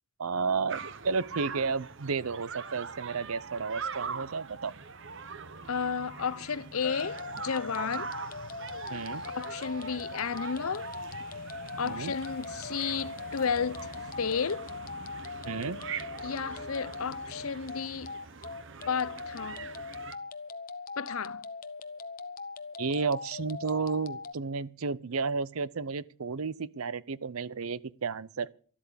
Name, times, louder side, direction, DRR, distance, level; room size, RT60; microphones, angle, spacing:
voice 1, 0.2-4.7 8.9-9.2 11.8-12.1 15.4-15.8 22.8-28.5, right 4 dB, 80° right, 0.7 m, -32 dB
sound 1, 0.7-20.2, right 5 dB, 55° right, 1.0 m, -42 dB
voice 2, 5.7-8.1 9.3-10.9 11.8-13.9 14.2-14.7 16.2-18.1 18.9-19.6 21.0-21.4, left 6 dB, 75° left, 0.7 m, -32 dB
sound 2, 6.8-24.3, left 4 dB, 40° left, 0.9 m, -41 dB
12.5 x 12.5 x 6.8 m
head